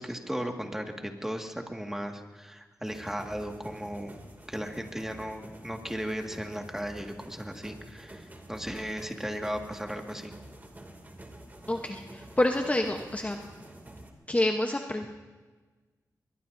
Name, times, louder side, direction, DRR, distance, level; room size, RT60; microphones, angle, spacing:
voice 1, 0.0-4.2 4.5-10.3, equal, 5° right, 3 dB, 1.9 m, -36 dB
sound 1, 2.8-14.1, right 1 dB, 25° right, 2.6 m, -48 dB
voice 2, 11.7-13.4 14.3-15.1, left 1 dB, 20° left, 3 dB, 1.0 m, -28 dB
22.0 x 21.0 x 2.7 m, 1.3 s
cardioid pair, 55°, 7 cm